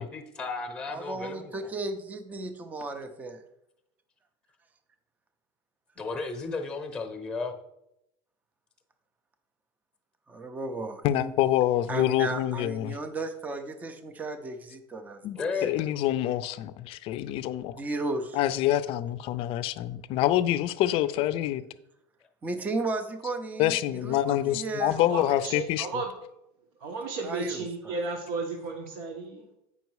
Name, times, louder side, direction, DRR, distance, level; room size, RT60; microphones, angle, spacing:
voice 1, 0.0-1.5 6.0-7.5 15.3-15.8, left 4 dB, 5° left, 0.9 m, -33 dB
voice 2, 0.9-3.4 10.3-11.3 11.9-15.5 17.7-18.4 22.4-25.0 27.2-28.0, right 2 dB, 10° right, 0.5 m, -35 dB
voice 3, 11.0-13.0 15.2-17.8 18.3-21.6 23.6-26.0, left 13 dB, 45° left, 0.4 m, -26 dB
voice 4, 25.0-26.1 26.8-29.4, right 3 dB, 75° right, 1.1 m, -34 dB
8.1 x 5.4 x 4.6 m
cardioid pair, 165°, 13 cm